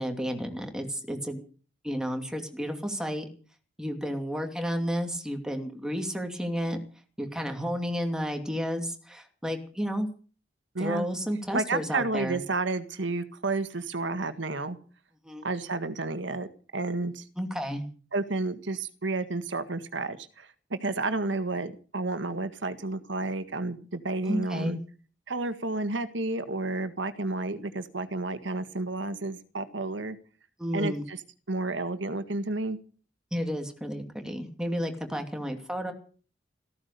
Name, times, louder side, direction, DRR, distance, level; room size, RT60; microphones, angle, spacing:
voice 1, 0.0-1.4 1.8-3.3 3.8-6.8 7.2-10.1 10.8-12.4 15.2-15.5 17.4-17.8 24.2-24.8 30.6-31.0 33.3-35.9, equal, 5° right, 4 dB, 2.6 m, -32 dB
voice 2, 10.7-11.1 11.5-14.8 15.4-16.5 16.7-17.3 18.1-24.8 25.3-30.2 30.7-31.2 31.5-32.8, right 2 dB, 75° right, 11 dB, 1.7 m, -31 dB
15.0 x 14.0 x 6.8 m, 0.41 s
head